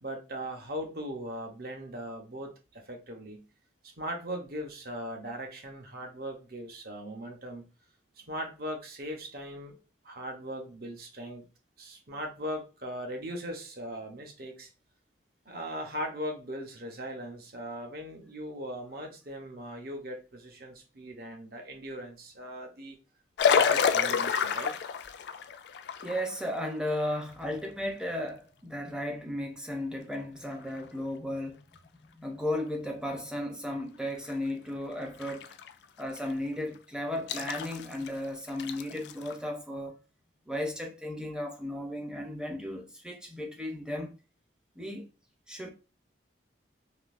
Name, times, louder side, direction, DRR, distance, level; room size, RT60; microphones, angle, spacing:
voice 1, 0.0-3.4 3.8-7.7 8.2-9.8 10.0-11.4 11.8-14.7 15.5-23.0 23.5-24.8, equal, 55° right, 0.8 m, -39 dB
sound 1, 23.4-26.6 27.1-27.2 30.7-30.8 31.8-31.9 33.8-33.9 34.3-34.4 35.0-35.7 36.2-36.3 37.3-38.2 38.5-39.3, left 7 dB, 65° left, 0.3 m, -28 dB
voice 2, 26.0-31.6 32.1-35.5 36.0-40.0 40.5-44.1 44.8-45.1 45.5-45.7, left 1 dB, 5° right, 0.5 m, -35 dB
3.7 x 2.6 x 2.5 m
head